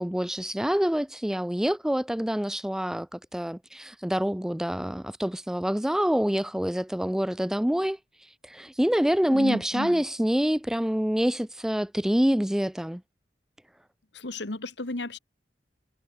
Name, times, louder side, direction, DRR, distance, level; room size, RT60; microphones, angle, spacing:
voice 1, 0.0-8.0 8.4-13.0, equal, 5° right, 0.3 m, -26 dB
voice 2, 9.3-10.0 14.1-15.2, left 2 dB, 75° left, 2.0 m, -33 dB
head